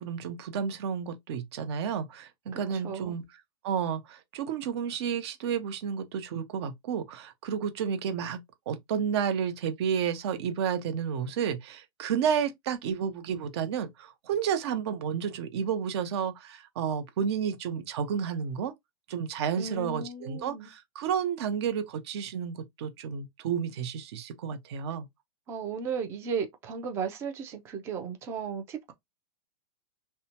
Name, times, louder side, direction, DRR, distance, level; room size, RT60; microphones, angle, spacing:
voice 1, 0.0-3.2 3.6-8.4 8.7-18.7 19.1-25.1, right 7 dB, 45° right, 0.7 m, -31 dB
voice 2, 2.8-3.2 19.6-20.7 25.5-28.9, right 6 dB, 15° right, 0.4 m, -35 dB
2.7 x 2.1 x 2.8 m
hypercardioid pair, 165°, 19 cm